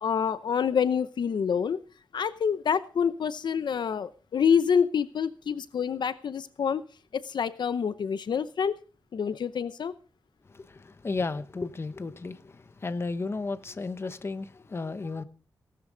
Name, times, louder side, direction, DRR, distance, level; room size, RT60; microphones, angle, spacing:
voice 1, 0.0-1.8 2.1-6.8 7.1-8.7 9.1-9.9, left 7 dB, 75° left, 0.7 m, -27 dB
voice 2, 10.5-15.2, left 3 dB, 35° left, 0.9 m, -34 dB
18.0 x 12.5 x 3.9 m
wide cardioid pair, 145°, 8 cm